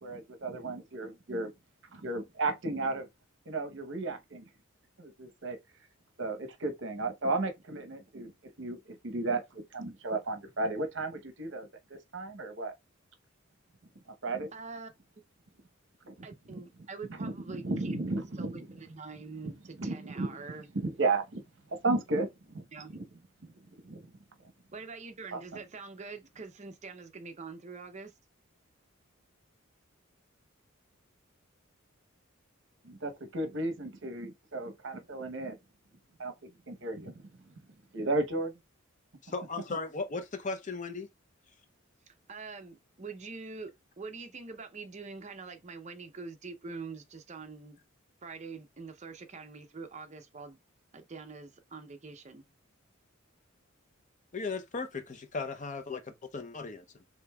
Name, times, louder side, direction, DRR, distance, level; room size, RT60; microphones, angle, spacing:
voice 1, 0.0-1.5 1.9-3.1 3.5-4.5 5.0-5.6 6.2-8.3 8.6-12.7 14.2-14.5 16.0-16.1 16.5-16.6 17.2-18.7 19.4-19.5 19.8-20.4 20.8-21.4 21.8-22.6 22.9-23.0 23.8-24.0 25.3-25.4 32.8-35.6 36.2-36.3 36.7-37.2 37.9-38.5, right 2 dB, 60° right, 0.9 m, -34 dB
voice 2, 14.5-14.9 16.2-18.0 18.4-20.7 22.7-23.0 24.7-28.1 42.1-47.8 48.2-50.6 50.9-52.4, right 4 dB, 35° right, 0.6 m, -44 dB
voice 3, 39.2-41.1 54.3-57.0, left 4 dB, 35° left, 0.6 m, -37 dB
5.1 x 3.4 x 2.3 m
head